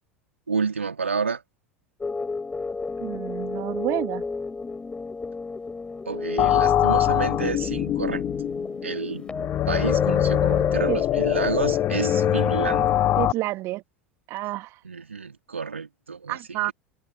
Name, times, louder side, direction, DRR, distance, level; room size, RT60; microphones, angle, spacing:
voice 1, 0.5-1.4 6.0-8.2 8.8-9.3 9.7-13.0 14.8-16.4, right 5 dB, 80° right, 3.4 m, -29 dB
sound 1, 2.0-13.3, left 4 dB, 15° left, 5.5 m, -31 dB
voice 2, 3.0-4.2 10.9-11.0 13.2-13.8 14.3-14.8 16.3-16.7, right 18 dB, 45° right, 1.4 m, -29 dB
sound 2, 6.4-13.3, left 14 dB, 35° left, 0.4 m, -23 dB
figure-of-eight pair, 80°, 7 cm